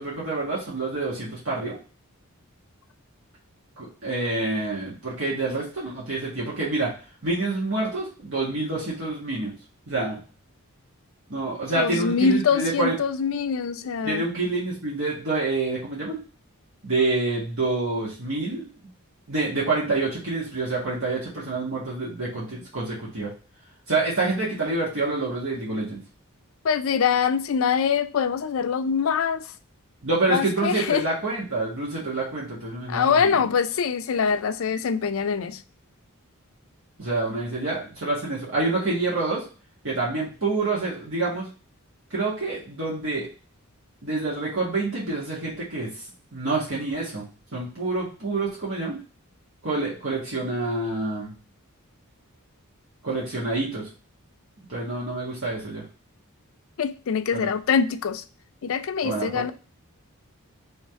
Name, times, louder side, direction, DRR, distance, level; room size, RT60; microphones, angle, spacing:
voice 1, 0.0-1.8 3.8-6.9 7.2-9.5 9.9-10.2 11.3-13.0 14.0-16.2 16.8-18.6 19.3-23.3 23.9-26.0 30.0-33.3 37.0-39.4 39.8-41.5 42.1-43.3 44.0-45.9 46.3-47.2 47.5-49.0 49.6-51.3 53.0-53.9 54.7-55.8 57.3-57.5 59.0-59.4, right 3 dB, 65° right, 1.6 m, -27 dB
voice 2, 11.7-14.3 26.6-29.5 30.3-31.0 32.9-35.6 56.8-58.2 58.6-59.5, left 6 dB, 65° left, 0.4 m, -24 dB
3.4 x 3.2 x 4.3 m
head